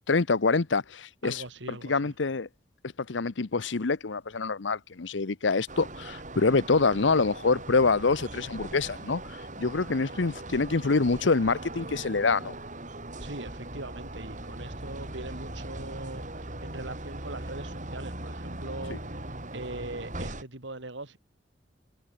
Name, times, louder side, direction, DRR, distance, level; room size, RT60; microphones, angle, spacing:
voice 1, 0.1-1.4 1.7-2.5 3.1-12.6 18.9-19.0, left 4 dB, 75° left, 0.9 m, -26 dB
voice 2, 1.2-2.1 13.2-19.2 19.5-21.2, right 2 dB, 75° right, 3.1 m, -41 dB
sound 1, 5.7-20.4, right 1 dB, 40° right, 8.0 m, -40 dB
head